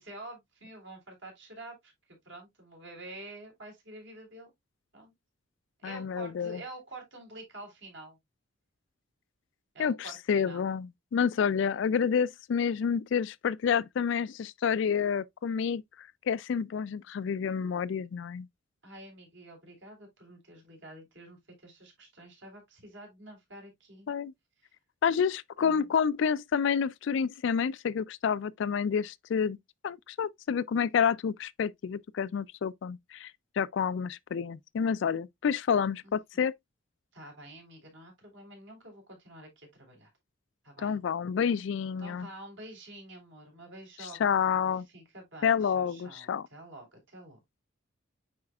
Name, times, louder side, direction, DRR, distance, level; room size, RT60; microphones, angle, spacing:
voice 1, 0.0-4.5 4.9-5.1 5.8-8.2 9.7-10.7 11.6-11.8 18.8-24.1 25.6-25.9 36.0-36.4 37.1-40.1 40.6-41.0 42.0-44.2 44.5-47.4, right 2 dB, 65° right, 3.6 m, -48 dB
voice 2, 5.8-6.6 9.8-18.5 24.1-24.3 25.0-29.6 29.8-33.3 33.6-36.5 40.8-42.3 44.0-44.9 45.4-46.5, left 7 dB, 60° left, 0.3 m, -29 dB
9.5 x 4.3 x 2.3 m
head